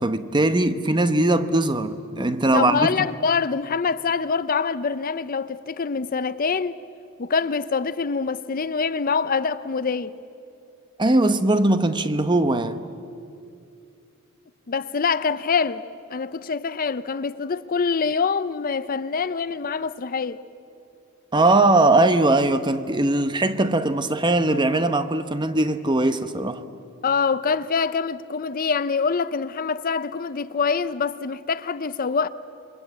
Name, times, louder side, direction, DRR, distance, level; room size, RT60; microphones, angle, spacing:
voice 1, 0.0-2.9 11.0-12.8 21.3-26.6, right 2 dB, 20° right, 0.8 m, -20 dB
voice 2, 2.5-6.8 7.2-10.1 14.7-15.8 16.1-20.4 27.0-32.3, left 5 dB, 40° left, 0.5 m, -25 dB
27.5 x 22.5 x 8.3 m
head